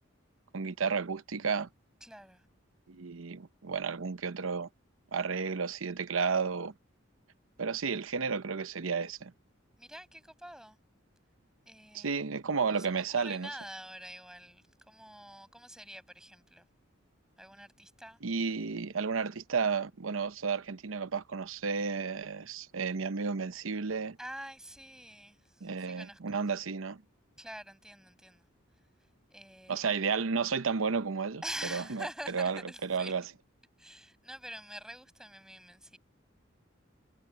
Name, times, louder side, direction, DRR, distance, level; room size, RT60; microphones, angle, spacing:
voice 1, 0.5-1.7 2.9-4.7 5.1-6.7 7.6-9.3 11.9-13.5 18.2-24.2 25.6-27.0 29.7-31.4 31.7-33.2, right 5 dB, 85° right, 0.8 m, -32 dB
voice 2, 2.0-2.4 9.8-10.8 11.7-12.2 12.7-16.6 17.4-18.2 24.2-26.4 27.4-28.5 29.3-30.0 31.4-33.1 33.8-36.0, right 1 dB, 5° right, 5.7 m, -46 dB
head